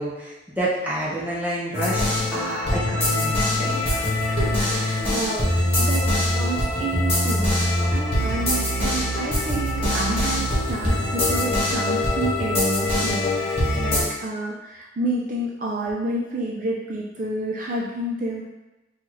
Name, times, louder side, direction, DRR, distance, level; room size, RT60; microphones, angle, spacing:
voice 1, 0.0-2.0 2.3-4.4, right 1 dB, 10° right, -7 dB, 0.7 m, -29 dB
sound 1, 1.7-14.0, left 1 dB, 30° left, 1.3 m, -23 dB
voice 2, 4.2-18.5, right 2 dB, 45° right, -3 dB, 0.4 m, -30 dB
4.2 x 2.4 x 3.0 m, 1.1 s
head